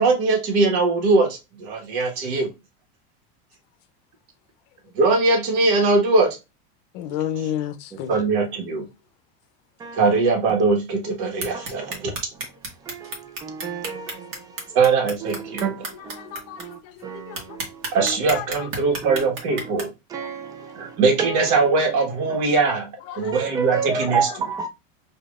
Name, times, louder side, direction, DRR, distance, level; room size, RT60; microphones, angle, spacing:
voice 1, 0.0-2.5 4.9-6.3 8.1-8.8 9.9-12.1 14.7-15.7 17.9-19.9 20.7-22.9 23.1-24.5, right 3 dB, 55° right, 1.5 m, -21 dB
voice 2, 6.9-8.2 15.9-16.7 17.1-17.6 18.3-18.5 20.2-20.3 23.1-23.3 24.3-24.6, left 10 dB, 60° left, 0.7 m, -31 dB
sound 1, 11.4-16.6 17.0-17.1 17.3-19.8, right 3 dB, 40° right, 1.4 m, -31 dB
voice 3, 13.4-14.2 15.6-15.8 17.0-17.4 20.1-20.6 21.2-21.3 23.3-24.7, right 6 dB, 10° right, 0.4 m, -27 dB
5.0 x 2.8 x 2.5 m
supercardioid pair, 145°, 33 cm